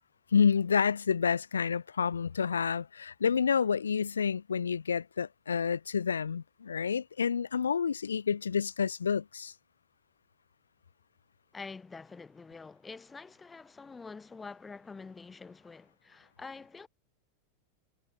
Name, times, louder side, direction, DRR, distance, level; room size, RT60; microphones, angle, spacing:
voice 1, 0.3-9.5, left 6 dB, 70° left, 1.2 m, -29 dB
voice 2, 11.5-16.9, left 4 dB, 15° left, 4.4 m, -46 dB
figure-of-eight pair, 90°, 0 cm